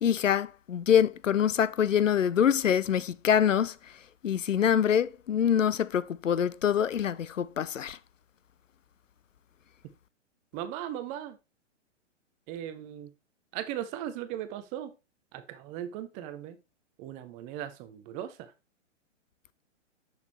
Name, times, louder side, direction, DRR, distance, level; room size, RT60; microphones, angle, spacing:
voice 1, 0.0-3.7 4.2-8.0, left 8 dB, 90° left, 0.5 m, -25 dB
voice 2, 10.5-11.4 12.5-13.1 13.5-14.9 15.3-16.6 17.0-18.5, right 11 dB, 20° right, 0.6 m, -38 dB
7.0 x 6.4 x 3.3 m
figure-of-eight pair, 120°, 37 cm